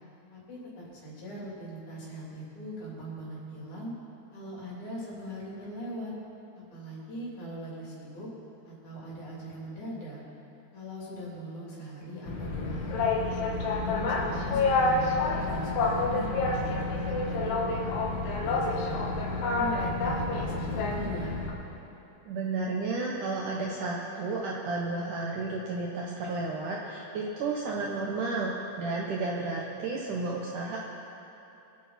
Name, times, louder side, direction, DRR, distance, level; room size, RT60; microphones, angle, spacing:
voice 1, 0.3-3.9 4.3-6.1 6.7-8.3 8.6-10.2 10.7-13.1 13.5-17.9 18.3-21.4, right 1 dB, 50° left, -6 dB, 4.4 m, -40 dB
Boat Water vehicle, 12.3-21.5, left 3 dB, 80° left, 3.5 m, -28 dB
voice 2, 22.3-30.8, right 3 dB, 70° right, -2 dB, 2.0 m, -32 dB
24.0 x 8.7 x 4.2 m, 3.0 s
omnidirectional pair, 4.8 m